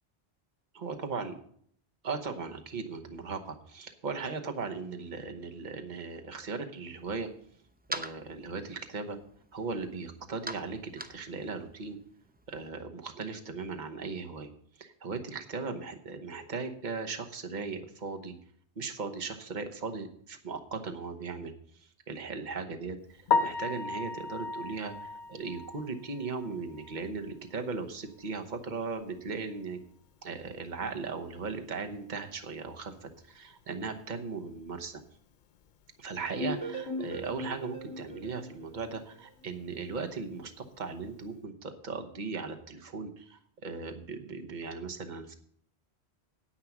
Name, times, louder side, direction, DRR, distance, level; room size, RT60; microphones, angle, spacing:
voice 1, 0.8-1.3 2.0-7.3 7.9-9.2 9.5-12.0 12.5-14.5 14.8-18.3 18.8-29.8 30.2-35.0 36.0-45.4, right 4 dB, 45° right, 5 dB, 1.2 m, -38 dB
sound 1, 7.0-12.7, right 1 dB, 10° right, 0.4 m, -45 dB
Piano, 23.3-27.3 27.6-27.7 28.2-28.3 28.7-28.8 31.9-32.0 40.4-40.7, left 4 dB, 55° left, 0.6 m, -34 dB
sound 2, 36.4-39.3, equal, 70° left, 2.7 m, -38 dB
10.0 x 8.5 x 6.0 m, 0.63 s
omnidirectional pair, 1.1 m